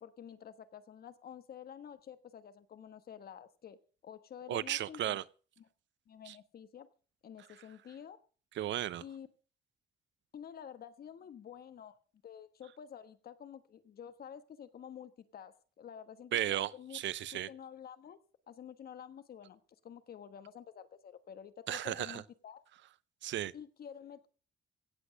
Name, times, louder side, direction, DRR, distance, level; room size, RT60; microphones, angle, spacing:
voice 1, 0.0-3.8 4.0-5.2 5.6-5.7 6.1-6.9 7.2-8.2 9.0-9.3 10.3-12.0 12.2-17.0 17.5-18.2 18.5-22.6 23.5-24.3, left 8 dB, 50° left, 1.3 m, -50 dB
voice 2, 4.5-5.2 6.3-6.4 8.6-9.0 16.3-17.5 21.7-22.2 23.2-23.5, right 12 dB, 70° right, 0.6 m, -35 dB
16.5 x 8.0 x 6.5 m
wide cardioid pair, 170°, 20 cm